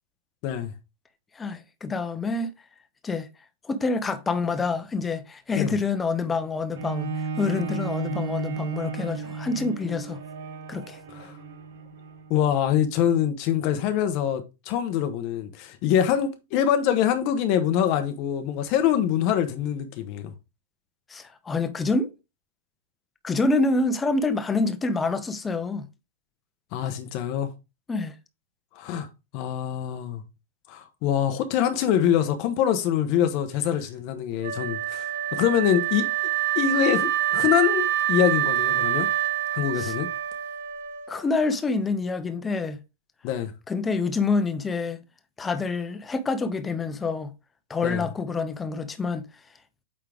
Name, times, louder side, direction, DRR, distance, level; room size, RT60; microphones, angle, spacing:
voice 1, 1.4-2.5 3.0-3.3 3.6-10.2 10.7-11.0 21.1-22.1 23.2-25.9 27.9-28.1 39.8-39.9 41.1-42.8 43.7-45.0 45.4-47.3 47.7-49.2, left 3 dB, 10° left, 0.6 m, -27 dB
Bowed string instrument, 6.7-12.4 13.0-13.1, right 4 dB, 75° right, 3.9 m, -34 dB
voice 2, 12.3-20.3 26.7-27.5 28.8-29.1 29.3-30.2 30.7-36.1 36.6-39.1 39.5-40.1 43.2-43.5 47.8-48.1, left 10 dB, 35° left, 0.9 m, -24 dB
Wind instrument woodwind instrument, 34.4-41.4, right 13 dB, 50° right, 1.1 m, -26 dB
8.5 x 3.7 x 3.4 m
supercardioid pair, 170°, 0 cm